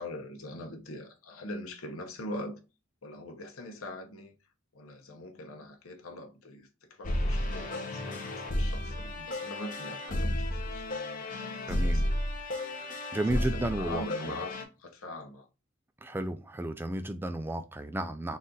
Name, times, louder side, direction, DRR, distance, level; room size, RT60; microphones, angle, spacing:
voice 1, 0.0-2.6 3.0-4.3 4.7-12.8 13.1-14.5 14.8-15.5, left 1 dB, 90° left, 0.8 m, -43 dB
sound 1, 7.0-14.6, left 1 dB, 40° left, 0.8 m, -32 dB
voice 2, 11.7-12.1 12.7-14.3 16.0-18.4, right 1 dB, 10° right, 0.3 m, -33 dB
4.1 x 2.5 x 3.7 m
head